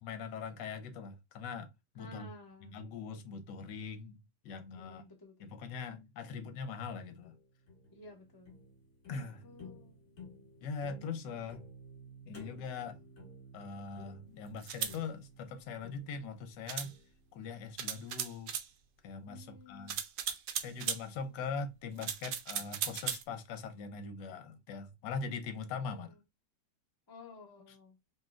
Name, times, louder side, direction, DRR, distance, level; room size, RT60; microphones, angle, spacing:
voice 1, 0.0-1.7 1.9-2.3 2.6-4.2 4.4-5.0 5.4-7.4 9.1-9.5 10.6-11.6 12.3-13.0 13.5-16.9 17.3-18.5 19.0-20.0 20.6-26.1 27.7-27.8, left 5 dB, 75° left, 1.3 m, -41 dB
voice 2, 1.9-2.8 4.8-5.3 7.9-8.5 9.4-10.0 19.3-19.9 25.7-25.9 27.1-28.0, left 2 dB, 20° left, 0.5 m, -53 dB
sound 1, 7.2-18.4, left 1 dB, 55° left, 2.1 m, -55 dB
sound 2, 14.6-15.0 16.7-16.9 17.8-18.7 19.9-21.0 22.0-23.2, right 8 dB, 70° right, 0.7 m, -37 dB
5.3 x 2.8 x 2.4 m
omnidirectional pair, 2.0 m